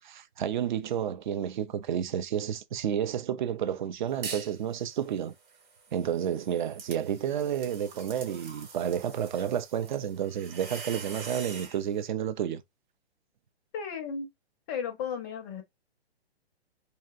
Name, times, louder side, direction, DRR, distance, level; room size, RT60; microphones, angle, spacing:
voice 1, 0.0-5.3 5.9-12.6, right 9 dB, 50° right, 0.4 m, -31 dB
sound 1, 4.1-4.6 5.0-11.8, right 5 dB, 25° right, 0.9 m, -44 dB
voice 2, 13.7-14.3 14.7-15.6, left 6 dB, 20° left, 0.5 m, -34 dB
2.6 x 2.1 x 2.2 m
hypercardioid pair, 130°, 32 cm